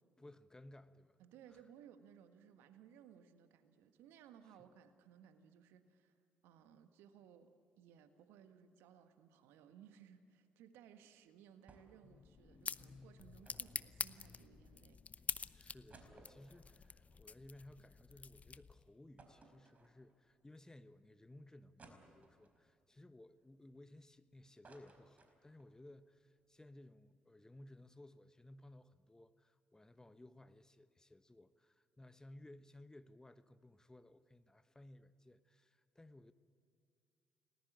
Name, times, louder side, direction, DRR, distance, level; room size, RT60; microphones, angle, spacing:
voice 1, 0.2-1.2 1.5-1.6 15.5-36.3, left 1 dB, 15° left, 12 dB, 1.1 m, -59 dB
voice 2, 1.2-6.2 6.4-15.3, right 8 dB, 65° right, 9 dB, 1.6 m, -61 dB
sound 1, 11.7-12.1 12.4-12.5 13.4-14.7 15.2-15.3 15.6-18.1 18.5-18.6 19.2-20.3 20.8-20.9 21.8-22.6 23.2-24.2 24.4-25.8 26.1-26.2 26.4-26.7, right 3 dB, 35° right, 4.8 m, -63 dB
sound 2, 12.0-18.9, left 5 dB, 35° left, 0.8 m, -47 dB
30.0 x 20.0 x 8.7 m, 2.5 s
figure-of-eight pair, 45°, 4 cm